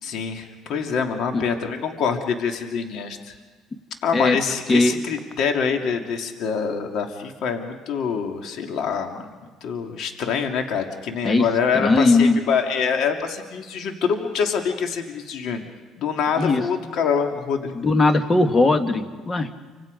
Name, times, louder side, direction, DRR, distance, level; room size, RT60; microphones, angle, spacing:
voice 1, 0.0-3.3 4.0-9.3 9.6-15.6 16.0-17.7, left 6 dB, 65° left, 4 dB, 2.4 m, -25 dB
voice 2, 11.7-12.4 16.4-16.6 17.7-19.5, left 3 dB, 25° left, 8 dB, 1.7 m, -19 dB
28.5 x 25.5 x 5.2 m, 1.4 s
cardioid pair, 100°, 0 cm